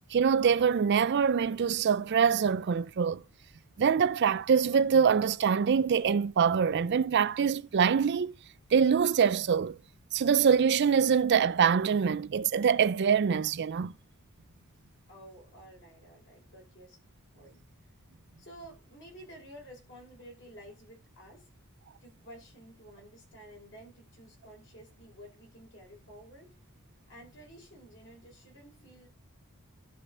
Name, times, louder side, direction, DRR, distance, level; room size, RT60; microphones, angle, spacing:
voice 1, 0.1-3.2 3.8-8.3 8.7-9.8 10.1-13.9, right 6 dB, 50° right, 0.4 m, -24 dB
voice 2, 15.1-17.0 17.3-17.7 18.4-21.5 22.0-26.5 27.1-29.1, right 1 dB, 55° left, 5.7 m, -52 dB
12.0 x 4.6 x 5.4 m
head